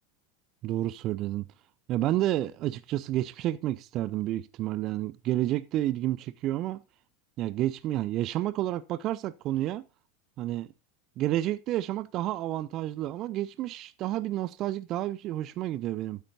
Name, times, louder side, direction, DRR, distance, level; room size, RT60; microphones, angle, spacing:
voice 1, 0.6-1.4 1.9-6.8 7.4-9.8 10.4-10.7 11.2-16.2, right 14 dB, 40° right, 0.4 m, -30 dB
14.0 x 8.1 x 2.8 m
figure-of-eight pair, 85°, 0 cm